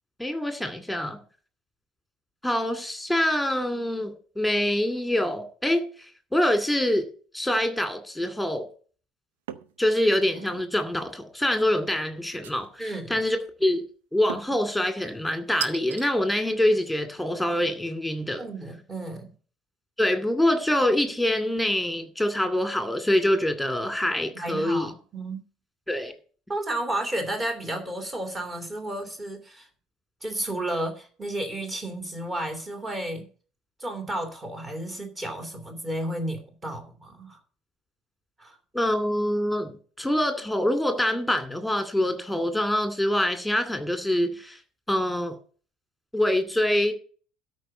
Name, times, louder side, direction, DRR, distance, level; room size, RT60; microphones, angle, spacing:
voice 1, 0.2-1.2 2.4-7.1 7.3-8.7 9.8-13.8 14.1-18.5 20.0-24.9 25.9-26.1 38.7-44.6 44.9-45.4 46.1-46.9, left 1 dB, ahead, 2.3 m, -25 dB
sound 1, 9.5-9.8 10.2-10.7 12.4-13.0 14.3-14.7 15.6-16.1, right 10 dB, 70° right, 0.6 m, -36 dB
voice 2, 12.8-13.2 18.4-19.3 24.3-25.4 26.5-29.7 30.2-33.3 33.8-37.4 38.4-38.5, right 1 dB, 25° right, 2.7 m, -32 dB
13.0 x 5.0 x 8.0 m
figure-of-eight pair, 60°, 0 cm